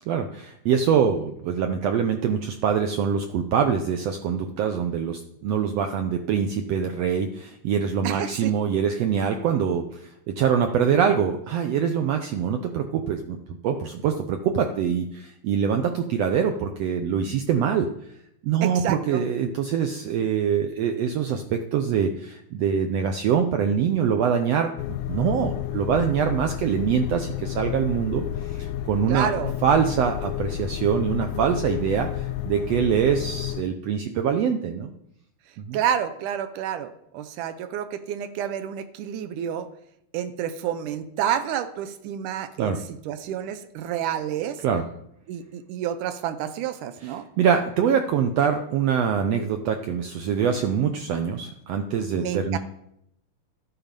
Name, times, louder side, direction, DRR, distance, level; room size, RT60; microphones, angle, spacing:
voice 1, 0.1-13.4 13.6-17.9 18.4-24.7 25.1-29.3 29.6-34.9 35.6-35.8 42.6-42.8 44.6-44.8 47.4-52.6, right 7 dB, 70° right, 6 dB, 1.7 m, -24 dB
voice 2, 8.0-8.5 18.6-19.2 29.1-29.5 35.7-39.7 40.1-42.8 43.1-44.6 45.3-47.2 52.2-52.6, right 9 dB, 90° right, 10 dB, 2.3 m, -29 dB
sound 1, 24.8-33.6, left 12 dB, 90° left, 2.1 m, -31 dB
13.5 x 8.9 x 5.3 m, 0.76 s
omnidirectional pair, 3.5 m